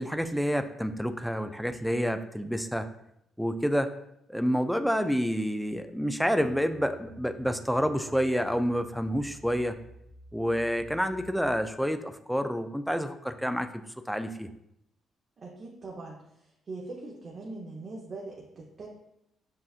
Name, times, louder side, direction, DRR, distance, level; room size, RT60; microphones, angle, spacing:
voice 1, 0.0-2.9 3.4-3.9 4.3-9.8 10.3-13.8 14.1-14.5, equal, ahead, 9 dB, 0.3 m, -28 dB
sound 1, 6.4-11.7, right 1 dB, 70° left, 1.6 m, -52 dB
voice 2, 15.4-18.9, right 3 dB, 45° right, -3 dB, 0.8 m, -42 dB
7.5 x 2.5 x 2.4 m, 0.80 s
cardioid pair, 90°, 0 cm